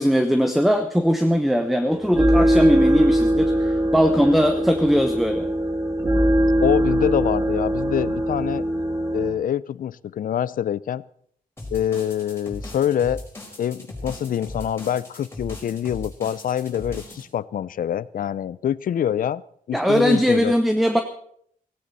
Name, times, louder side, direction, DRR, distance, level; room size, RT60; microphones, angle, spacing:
voice 1, 0.0-5.5 19.7-21.0, equal, ahead, 7 dB, 0.9 m, -20 dB
sound 1, 1.9-9.3, right 1 dB, 20° right, 2.8 m, -21 dB
voice 2, 6.6-8.6 9.1-11.0 11.7-13.2 13.6-19.4 19.7-20.5, left 10 dB, 70° left, 19 dB, 0.5 m, -25 dB
sound 2, 11.6-17.2, left 1 dB, 15° left, 4.9 m, -38 dB
17.0 x 17.0 x 4.1 m, 0.65 s
wide cardioid pair, 140°, 15 cm